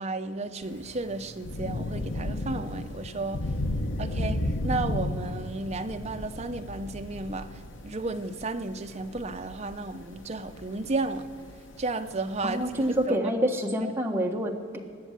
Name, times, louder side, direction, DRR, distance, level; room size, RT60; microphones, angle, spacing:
voice 1, 0.0-3.5 4.0-11.3 11.8-12.6 13.1-13.2, right 3 dB, 35° right, 0.7 m, -33 dB
Thunder / Rain, 0.6-13.0, left 1 dB, 70° left, 1.0 m, -34 dB
voice 2, 12.4-14.8, equal, 10° right, 1.4 m, -27 dB
20.0 x 7.1 x 7.4 m
head